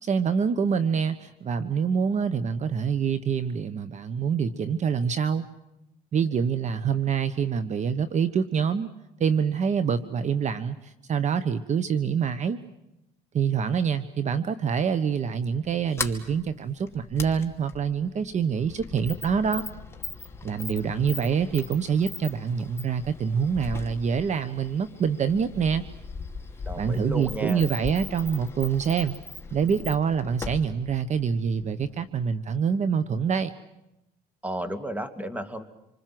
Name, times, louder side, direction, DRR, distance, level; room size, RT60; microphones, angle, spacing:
voice 1, 0.0-5.5 6.1-8.9 9.2-12.6 13.3-19.6 20.4-25.8 26.8-29.1 29.5-33.5, right 6 dB, 45° right, 13 dB, 1.2 m, -26 dB
Sliding door, 15.6-32.0, left 4 dB, 15° left, 2.4 m, -40 dB
voice 2, 26.7-27.6 34.4-35.6, right 1 dB, 10° right, 10 dB, 2.3 m, -33 dB
27.0 x 25.0 x 7.8 m, 0.88 s
cardioid pair, 110°, 17 cm